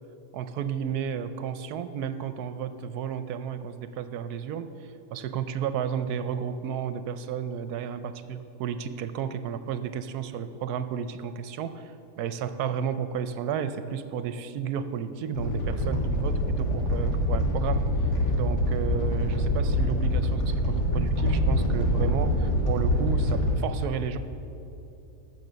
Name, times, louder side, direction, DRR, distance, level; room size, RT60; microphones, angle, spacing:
voice 1, 0.3-4.7 5.1-17.9 18.3-24.2, right 8 dB, 75° right, 11 dB, 1.1 m, -32 dB
Animal, 15.3-23.5, equal, 80° left, 2.2 m, -25 dB
15.0 x 6.4 x 6.8 m, 3.0 s
omnidirectional pair, 1.7 m